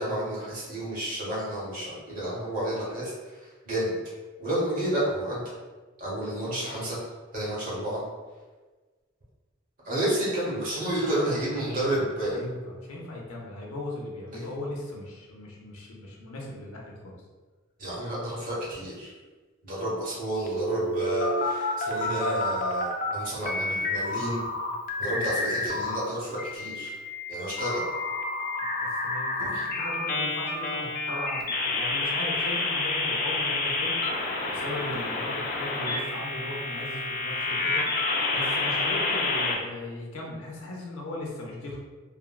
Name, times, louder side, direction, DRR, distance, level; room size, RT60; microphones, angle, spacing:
voice 1, 0.0-3.9 4.4-5.4 6.0-7.0 7.3-8.0 9.8-12.4 14.3-14.5 17.8-19.1 19.6-24.4 25.0-26.9 27.3-27.8 29.4-29.6, right 1 dB, 40° right, -6 dB, 0.9 m, -30 dB
voice 2, 6.2-6.7 10.9-11.4 11.6-11.9 12.3-17.2 28.8-34.0 34.5-37.8 38.3-41.8, left 1 dB, 85° left, -2 dB, 0.6 m, -38 dB
sound 1, 20.5-23.1 23.4-26.0 26.4-39.5, left 2 dB, 40° left, 0.4 m, -29 dB
3.5 x 2.1 x 2.2 m, 1.3 s
head